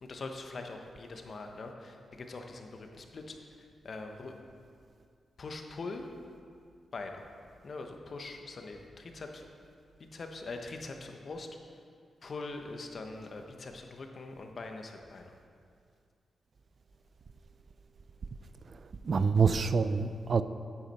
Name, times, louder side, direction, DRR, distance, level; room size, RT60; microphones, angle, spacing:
voice 1, 0.0-4.4 5.4-6.1 6.9-7.2 7.6-9.4 10.1-11.5 12.2-15.3, left 3 dB, 55° left, 4 dB, 1.2 m, -43 dB
voice 2, 18.7-20.4, right 5 dB, 60° right, 12 dB, 0.4 m, -27 dB
9.3 x 8.8 x 4.4 m, 2.3 s
supercardioid pair, 45°, 0 cm